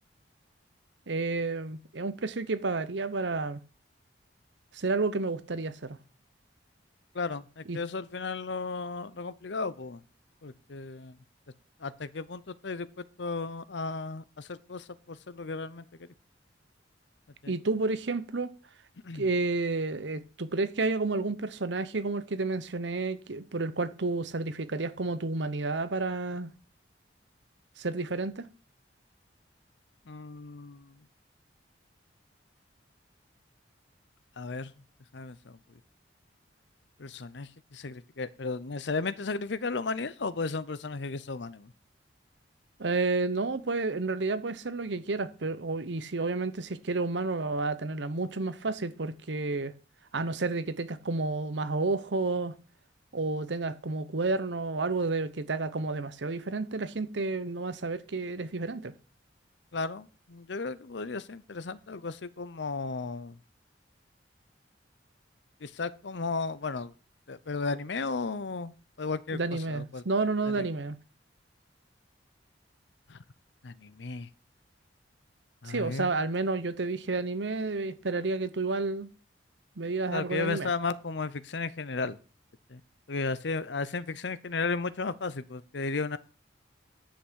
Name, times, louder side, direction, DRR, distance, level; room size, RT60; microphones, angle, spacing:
voice 1, 1.1-3.6 4.7-6.0 7.7-7.8 17.5-18.5 19.1-26.5 27.8-28.5 42.8-49.7 50.1-52.5 53.1-58.9 69.3-71.0 75.6-79.1 79.8-80.7, right 3 dB, 70° right, 0.9 m, -31 dB
voice 2, 7.1-10.0 10.4-11.2 11.8-16.1 17.4-17.5 19.0-19.2 30.1-30.9 34.4-34.7 35.1-35.6 37.0-41.7 59.7-63.4 65.6-66.9 67.3-70.0 70.5-70.7 73.1-73.2 73.6-74.3 75.6-76.1 80.1-82.2 82.7-82.8 83.1-86.2, left 4 dB, 70° left, 0.7 m, -34 dB
10.0 x 5.9 x 6.3 m
head